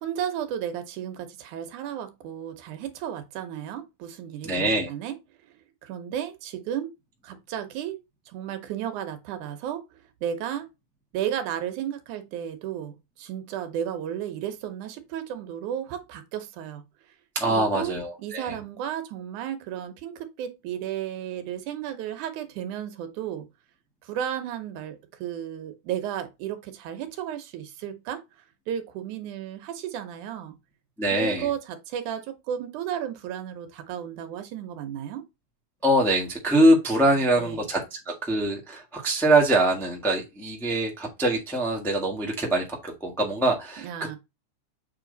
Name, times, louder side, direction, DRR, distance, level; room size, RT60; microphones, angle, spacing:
voice 1, 0.0-5.1 5.8-6.9 7.2-8.0 8.3-9.8 10.2-10.7 11.1-16.8 17.5-23.5 24.0-28.2 28.7-30.6 31.1-35.2 37.0-37.6 43.8-44.2, right 10 dB, 80° right, 2.4 m, -33 dB
voice 2, 4.4-4.9 17.3-18.5 31.0-31.5 35.8-43.9, right 1 dB, ahead, 0.7 m, -23 dB
7.4 x 3.3 x 3.9 m
omnidirectional pair, 3.5 m